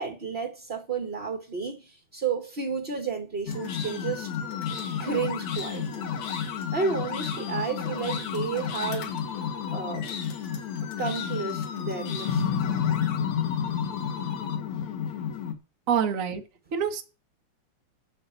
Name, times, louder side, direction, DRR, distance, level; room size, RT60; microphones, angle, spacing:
voice 1, 0.0-4.3 5.0-6.1 6.7-9.1 9.7-10.1 11.0-12.6, right 5 dB, 40° right, 0.8 m, -32 dB
sound 1, 3.5-15.5, left 7 dB, 65° left, 2.6 m, -31 dB
voice 2, 15.9-16.4 16.7-17.0, right 7 dB, 80° right, 0.7 m, -26 dB
8.6 x 6.6 x 8.1 m
omnidirectional pair, 3.5 m